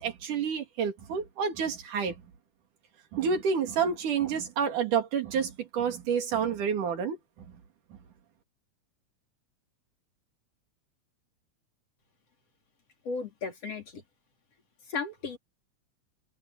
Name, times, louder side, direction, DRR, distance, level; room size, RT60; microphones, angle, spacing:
voice 1, 0.0-2.1 3.1-7.2, right 6 dB, 85° right, 4.1 m, -29 dB
voice 2, 13.1-14.0 14.9-15.4, left 4 dB, 50° left, 5.4 m, -35 dB
omnidirectional pair, 3.5 m